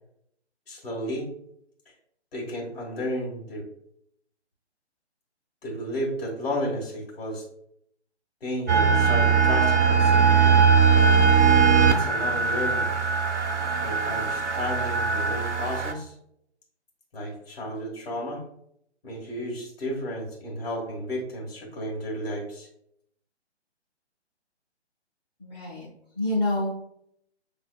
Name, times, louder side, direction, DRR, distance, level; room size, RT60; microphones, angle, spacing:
voice 1, 0.7-1.3 2.3-3.6 5.6-7.4 8.4-10.7 11.8-12.9 13.8-16.1 17.1-18.4 19.0-22.7, equal, 55° left, -3 dB, 1.7 m, -33 dB
sound 1, 8.7-15.9, right 6 dB, 90° right, 0.8 m, -20 dB
voice 2, 25.4-25.9 26.2-26.7, left 1 dB, 25° left, -6 dB, 0.6 m, -27 dB
6.1 x 3.4 x 2.2 m, 0.73 s
figure-of-eight pair, 145°, 34 cm